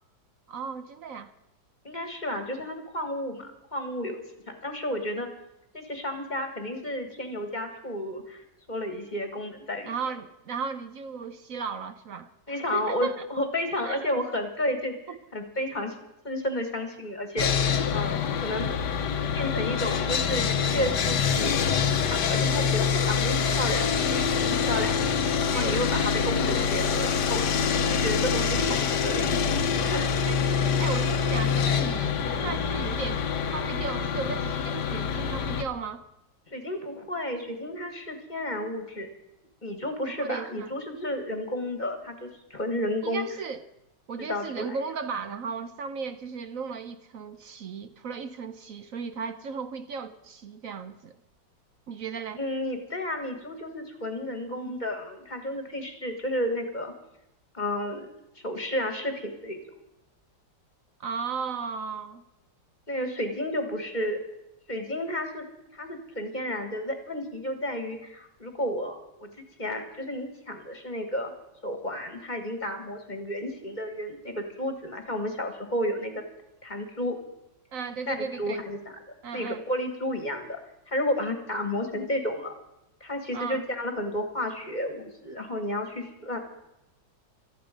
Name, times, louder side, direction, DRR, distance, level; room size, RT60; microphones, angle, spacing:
voice 1, 0.5-1.3 9.8-12.3 12.7-13.3 13.8-14.0 15.1-15.2 25.5-25.9 26.4-26.6 30.3-36.0 40.1-40.7 43.0-43.6 44.1-51.2 51.9-52.4 61.0-62.2 77.7-78.6 79.2-79.6 83.3-83.6, right 5 dB, 60° right, 0.9 m, -35 dB
voice 2, 1.8-4.2 4.5-5.3 5.7-9.9 12.5-16.0 16.2-18.7 19.3-21.5 22.0-25.0 25.5-29.4 29.7-30.1 36.5-39.1 39.6-43.3 44.2-44.8 52.4-56.9 57.5-58.1 58.4-59.6 62.9-64.2 64.7-65.5 65.7-71.3 71.6-76.2 76.6-77.2 78.1-78.8 79.3-80.6 80.9-82.5 83.0-86.4, left 1 dB, 25° left, 1.6 m, -32 dB
Sawing, 17.4-35.6, left 6 dB, 65° left, 1.5 m, -25 dB
18.5 x 13.5 x 5.2 m
omnidirectional pair, 2.0 m